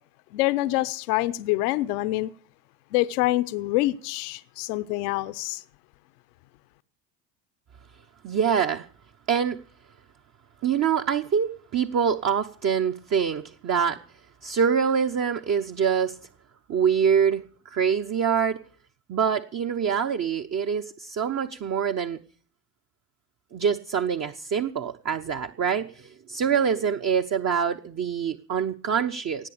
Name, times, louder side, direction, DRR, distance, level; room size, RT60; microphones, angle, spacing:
voice 1, 0.3-2.3 2.9-5.6, left 17 dB, 75° left, 0.8 m, -26 dB
voice 2, 8.2-8.9 9.3-9.6 10.6-14.0 14.4-16.2 16.7-18.6 19.1-22.2 23.5-29.5, right 7 dB, 35° right, 0.9 m, -25 dB
18.0 x 8.4 x 6.6 m
hypercardioid pair, 70°, 47 cm